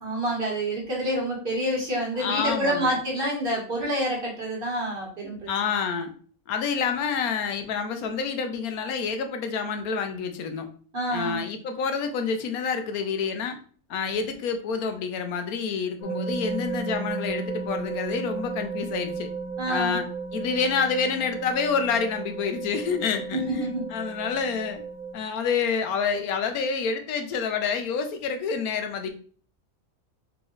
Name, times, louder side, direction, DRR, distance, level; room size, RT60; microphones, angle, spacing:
voice 1, 0.0-5.5 10.9-11.4 19.6-19.9 23.3-23.8, right 1 dB, 40° right, -3 dB, 1.7 m, -27 dB
voice 2, 2.1-3.0 5.2-6.1 6.5-10.7 11.1-13.6 13.9-19.3 19.7-20.0 20.3-24.8 25.1-29.1, left 5 dB, 80° left, 7 dB, 1.1 m, -28 dB
sound 1, 16.0-25.1, right 4 dB, 55° left, 1.5 m, -34 dB
3.9 x 3.5 x 3.1 m, 0.43 s
omnidirectional pair, 1.5 m